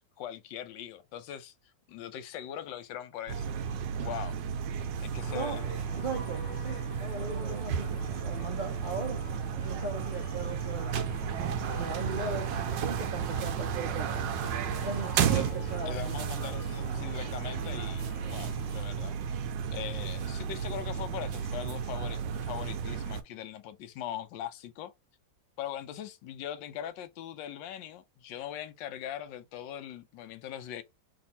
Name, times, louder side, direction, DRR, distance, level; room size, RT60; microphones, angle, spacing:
voice 1, 0.2-1.5 1.9-3.5 3.9-4.4 5.0-5.7 15.1-15.5 15.9-18.0 18.3-19.4 19.7-24.9 25.6-30.8, left 10 dB, 85° left, 1.3 m, -41 dB
sound 1, 3.3-23.2, right 7 dB, 85° right, 1.3 m, -33 dB
sound 2, 5.2-18.9, left 3 dB, 60° left, 0.5 m, -48 dB
voice 2, 6.0-9.2 9.6-10.9 11.8-14.2 14.8-16.6, right 4 dB, 55° right, 0.5 m, -38 dB
3.4 x 2.4 x 4.0 m
omnidirectional pair, 1.9 m